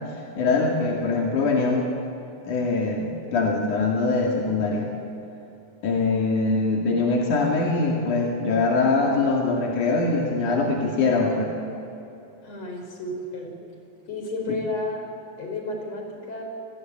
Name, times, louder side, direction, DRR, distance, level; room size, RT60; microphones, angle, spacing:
voice 1, 0.4-1.8 2.4-4.9 5.8-11.6 14.5-14.6, left 3 dB, 85° left, -1 dB, 4.0 m, -23 dB
voice 2, 12.4-13.5 14.1-15.1 15.4-16.4, left 2 dB, 60° left, 2 dB, 6.2 m, -32 dB
29.5 x 20.0 x 9.1 m, 2.9 s
omnidirectional pair, 3.4 m